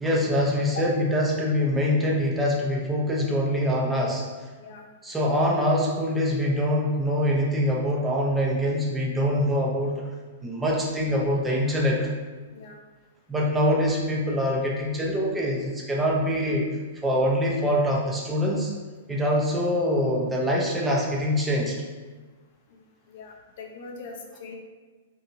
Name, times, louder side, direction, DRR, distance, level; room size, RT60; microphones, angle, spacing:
voice 1, 0.0-4.2 5.0-10.0 10.4-12.1 13.3-16.7 17.0-18.7 19.1-21.8, equal, 10° right, -2 dB, 0.6 m, -24 dB
voice 2, 12.5-12.8 22.7-22.8 23.1-24.6, left 3 dB, 55° left, 2 dB, 0.5 m, -40 dB
2.7 x 2.3 x 2.7 m, 1.3 s
hypercardioid pair, 115°, 0 cm